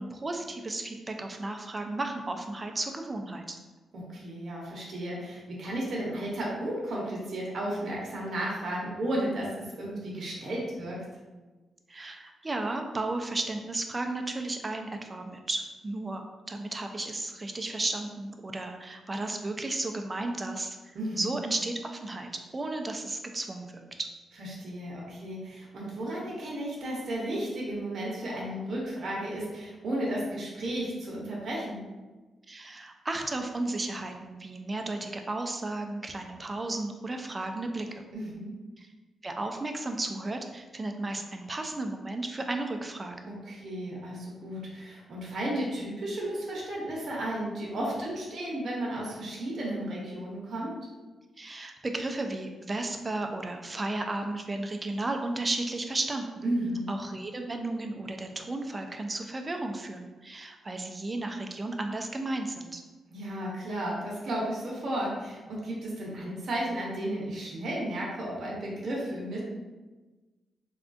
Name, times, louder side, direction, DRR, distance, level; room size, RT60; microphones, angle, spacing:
voice 1, 0.0-3.6 11.9-20.8 21.1-24.1 32.5-38.0 38.8-38.9 39.2-43.3 51.4-56.4 56.9-62.8, right 2 dB, 30° right, 4 dB, 0.4 m, -34 dB
voice 2, 3.9-11.0 20.9-21.3 24.4-31.8 38.1-38.5 43.3-50.8 56.4-56.9 63.1-69.4, right 1 dB, 60° right, -4 dB, 0.8 m, -33 dB
3.4 x 2.3 x 2.5 m, 1.2 s
cardioid pair, 75°, 0 cm